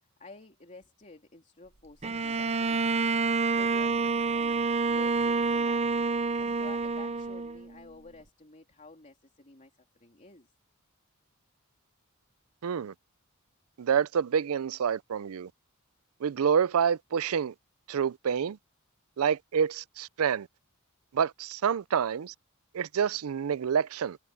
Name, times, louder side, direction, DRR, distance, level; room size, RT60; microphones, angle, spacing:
voice 1, 0.2-3.0 3.5-5.9 6.4-9.7 10.0-10.5, left 3 dB, 35° left, 3.1 m, -51 dB
Bowed string instrument, 2.0-7.8, right 4 dB, 30° right, 0.7 m, -28 dB
voice 2, 12.6-12.9 13.8-15.5 16.2-17.5 17.9-18.6 19.2-20.5 21.1-22.3 22.7-24.2, right 7 dB, 70° right, 0.4 m, -27 dB
head